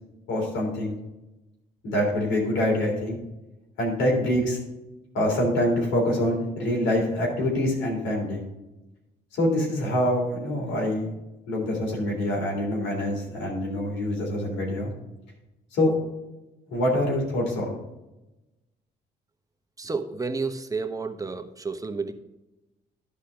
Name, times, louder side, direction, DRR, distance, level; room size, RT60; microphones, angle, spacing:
voice 1, 0.3-1.0 1.8-3.2 3.8-4.6 5.1-8.4 9.3-11.1 11.5-14.9 15.7-15.9 16.7-17.8, left 1 dB, 90° left, -2 dB, 3.5 m, -25 dB
voice 2, 19.8-22.1, right 4 dB, 20° right, 6 dB, 1.0 m, -31 dB
12.0 x 4.2 x 5.1 m, 0.99 s
cardioid pair, 85°, 18 cm